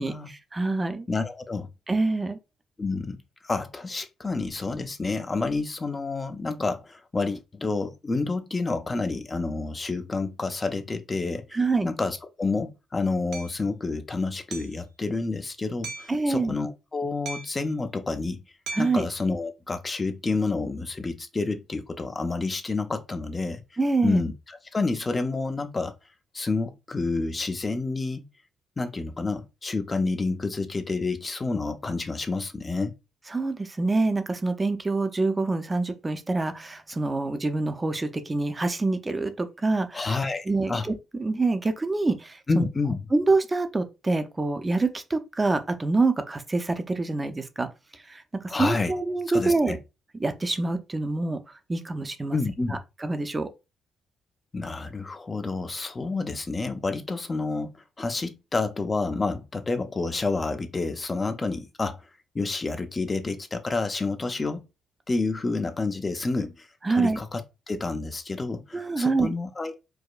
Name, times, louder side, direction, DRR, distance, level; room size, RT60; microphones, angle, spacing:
voice 1, 0.0-1.1 1.9-2.4 11.5-11.9 16.1-16.5 18.7-19.1 23.8-24.2 33.3-40.1 40.5-42.6 43.1-49.8 50.2-51.4 51.7-52.4 52.7-53.5 66.8-67.2 68.7-69.3, right 3 dB, 20° right, 0.5 m, -26 dB
voice 2, 1.1-1.7 2.8-18.4 18.8-23.6 24.0-25.9 26.3-28.2 28.8-32.9 39.9-40.9 42.5-43.0 48.5-48.9 49.3-49.8 52.3-52.8 54.5-62.1 62.3-64.7 65.1-67.4 67.7-69.8, left 3 dB, 25° left, 0.5 m, -29 dB
Hammer, 13.3-13.5 14.5-14.8 15.8-16.2 17.3-17.7 18.7-19.0, right 3 dB, 70° right, 0.7 m, -37 dB
4.7 x 2.1 x 2.4 m
cardioid pair, 90°, 0 cm